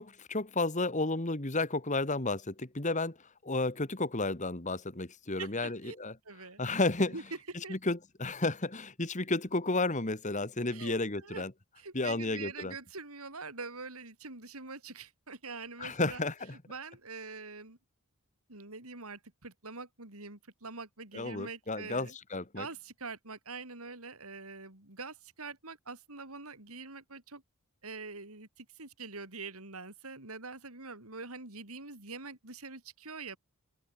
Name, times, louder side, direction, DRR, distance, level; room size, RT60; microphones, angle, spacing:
voice 1, 0.0-3.2 3.4-6.1 6.6-7.2 7.7-11.5 11.9-12.7 15.8-16.6 21.1-22.7, left 2 dB, 35° left, 1.9 m, -32 dB
voice 2, 5.4-6.0 6.2-6.6 7.1-7.2 7.6-7.8 10.7-11.4 11.8-16.2 16.7-17.8 18.5-22.1 22.6-27.4 27.8-33.4, right 4 dB, 80° right, 5.1 m, -44 dB
open air
head